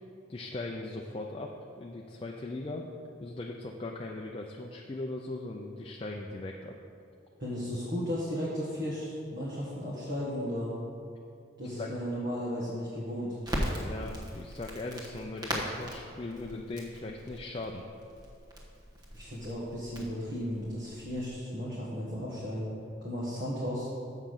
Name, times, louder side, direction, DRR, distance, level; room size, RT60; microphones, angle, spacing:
voice 1, 0.3-2.9 3.2-6.8 11.6-11.9 13.8-17.8, left 2 dB, 30° left, 0 dB, 0.4 m, -39 dB
voice 2, 7.4-10.7 11.6-13.4 19.1-22.6 23.0-23.9, equal, 50° right, -7 dB, 1.5 m, -35 dB
Crackle, 13.4-21.4, equal, 20° right, 1.2 m, -39 dB
7.3 x 5.8 x 6.5 m, 2.5 s
head